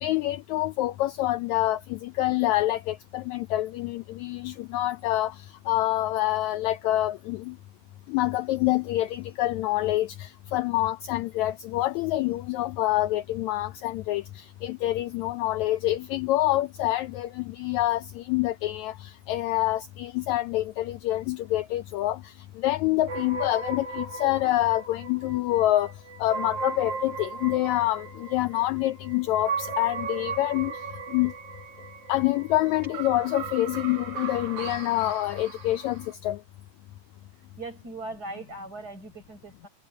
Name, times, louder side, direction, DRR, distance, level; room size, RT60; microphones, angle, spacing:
voice 1, 0.0-7.6 8.1-25.9 26.2-30.8 31.1-31.3 32.1-36.4, left 15 dB, 80° left, 1.7 m, -26 dB
sound 1, 23.1-36.1, right 4 dB, 65° right, 4.1 m, -37 dB
voice 2, 37.6-39.7, right 2 dB, 25° right, 7.3 m, -39 dB
omnidirectional pair, 3.7 m